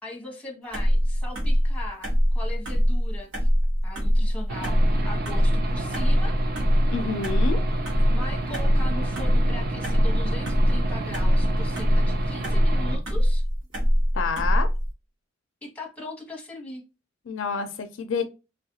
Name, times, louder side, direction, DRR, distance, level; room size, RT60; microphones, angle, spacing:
voice 1, 0.0-3.5 3.8-6.4 8.1-13.4 15.6-16.8, left 2 dB, 5° left, 0 dB, 1.0 m, -40 dB
sound 1, 0.7-14.9, equal, 75° right, 1.1 m, -23 dB
Aircraft / Engine, 4.5-13.0, right 2 dB, 50° right, 0.5 m, -31 dB
voice 2, 6.9-7.6 14.1-14.7 17.3-18.2, left 5 dB, 70° left, 9 dB, 0.4 m, -28 dB
3.2 x 2.4 x 2.7 m, 0.29 s
head